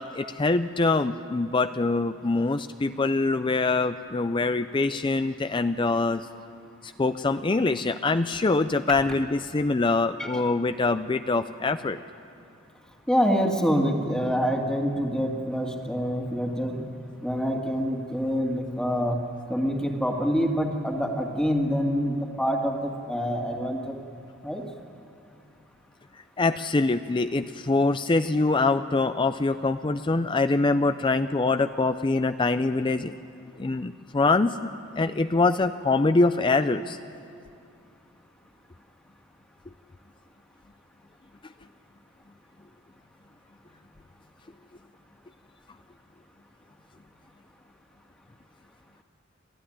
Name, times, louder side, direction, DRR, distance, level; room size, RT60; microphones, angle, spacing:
voice 1, 0.0-6.3 6.8-12.0 26.4-33.1 33.6-34.7 35.0-37.0, left 3 dB, 25° left, 11 dB, 0.5 m, -24 dB
voice 2, 13.1-16.9 17.2-19.2 19.5-24.0 24.4-24.6, equal, 5° left, 1 dB, 1.9 m, -26 dB
27.5 x 13.0 x 10.0 m, 2.4 s
head